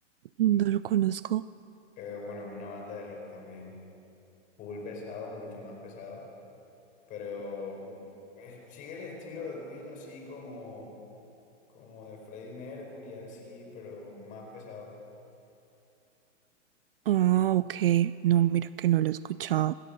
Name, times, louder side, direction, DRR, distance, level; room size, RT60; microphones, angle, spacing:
voice 1, 0.4-1.4 17.1-19.7, right 13 dB, 55° right, 17 dB, 0.4 m, -25 dB
voice 2, 2.0-3.8 4.6-6.3 7.1-8.1 8.4-11.0 11.7-15.0, left 3 dB, 20° left, 1 dB, 4.5 m, -42 dB
26.0 x 19.0 x 6.7 m, 2.7 s
hypercardioid pair, 165°, 35 cm